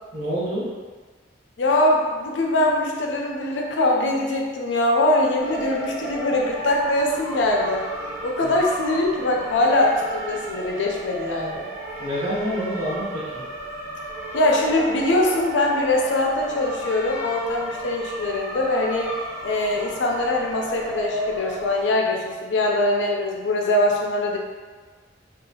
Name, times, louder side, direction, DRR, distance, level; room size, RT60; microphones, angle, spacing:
voice 1, 0.1-0.7 8.4-8.5 12.0-13.4, equal, 45° right, -9 dB, 1.0 m, -27 dB
voice 2, 1.6-7.9 8.2-11.7 14.3-19.1 19.4-24.4, left 1 dB, 75° left, 0 dB, 0.5 m, -22 dB
sound 1, 5.4-21.8, right 1 dB, 15° right, 0.7 m, -34 dB
2.7 x 2.4 x 2.7 m, 1.4 s
head